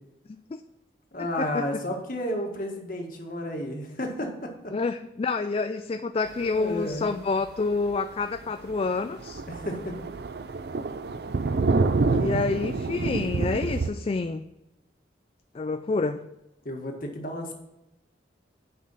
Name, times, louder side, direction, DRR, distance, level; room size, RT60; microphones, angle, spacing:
voice 1, 1.1-4.7 6.6-7.1 9.5-10.0 11.7-12.5 16.6-17.5, left 1 dB, 50° left, 2 dB, 1.7 m, -32 dB
voice 2, 4.7-9.4 12.2-14.5 15.5-16.2, left 3 dB, 30° left, 9 dB, 0.3 m, -28 dB
Thunder, 6.9-7.1 7.5-7.6 7.9-8.0 8.4-8.5 8.7-13.9, right 3 dB, 60° right, 0.5 m, -27 dB
9.5 x 5.4 x 5.7 m, 0.93 s
head